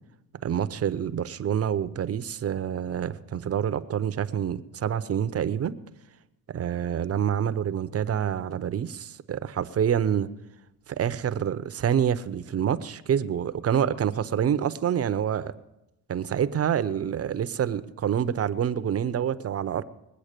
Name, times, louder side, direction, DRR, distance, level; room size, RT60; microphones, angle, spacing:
voice 1, 0.4-5.8 6.5-10.3 10.9-15.5 16.1-19.8, right 9 dB, 40° right, 13 dB, 0.7 m, -27 dB
21.0 x 8.3 x 6.6 m, 0.90 s
cardioid pair, 100°, 37 cm